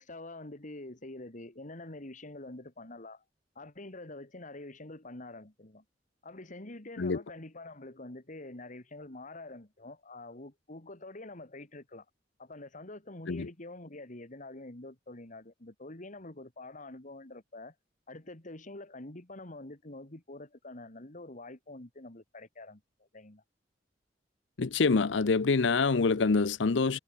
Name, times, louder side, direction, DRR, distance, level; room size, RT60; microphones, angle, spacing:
voice 1, 0.0-3.2 3.5-5.8 6.2-12.1 12.4-17.7 18.1-23.4, left 2 dB, 45° left, 2.5 m, -46 dB
voice 2, 24.6-27.0, left 4 dB, 70° left, 0.7 m, -26 dB
head